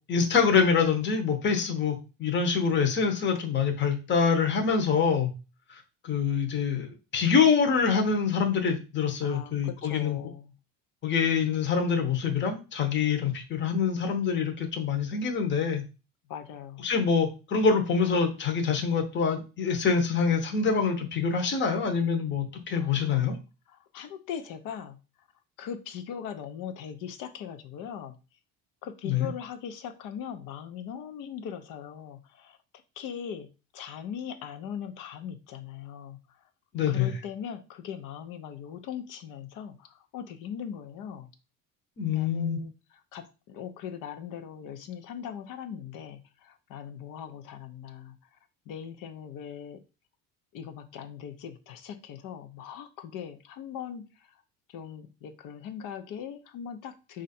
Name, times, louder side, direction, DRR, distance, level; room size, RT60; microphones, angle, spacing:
voice 1, 0.1-5.3 6.0-10.2 11.0-15.8 16.8-23.3 29.0-29.3 36.7-37.1 42.0-42.6, left 6 dB, 35° left, 4 dB, 0.9 m, -25 dB
voice 2, 9.2-10.5 16.3-16.9 22.7-23.3 23.7-25.0 25.6-28.2 28.8-32.6 33.0-36.2 36.8-41.3 42.1-48.2 48.7-49.8 50.5-54.1 54.7-57.2, left 8 dB, 70° left, 9 dB, 0.8 m, -40 dB
4.3 x 2.6 x 4.2 m, 0.31 s
cardioid pair, 125°, 34 cm